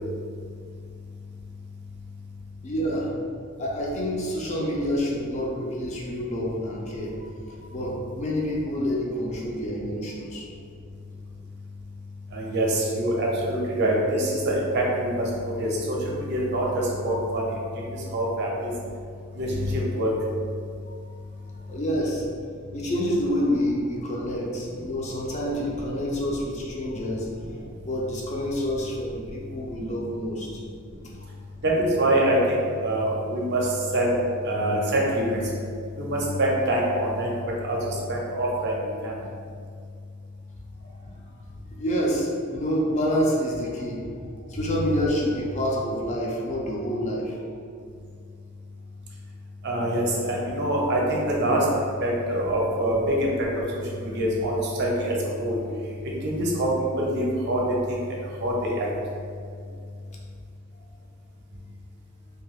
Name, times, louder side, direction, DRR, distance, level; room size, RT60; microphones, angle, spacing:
voice 1, 2.6-3.1 3.6-10.5 20.9-21.0 21.7-22.3 22.7-27.3 27.8-30.6 40.8-40.9 41.3-41.4 41.7-44.1 44.5-47.4 52.4-52.5 54.1-54.2, equal, 35° left, -3 dB, 0.4 m, -28 dB
voice 2, 12.3-17.5 17.7-18.7 19.3-20.1 31.6-34.2 34.4-35.5 36.0-39.1 49.6-53.5 53.7-55.6 56.2-56.7 57.0-57.6 57.9-58.9, right 1 dB, 50° right, -3 dB, 0.5 m, -25 dB
2.5 x 2.2 x 3.4 m, 2.3 s
head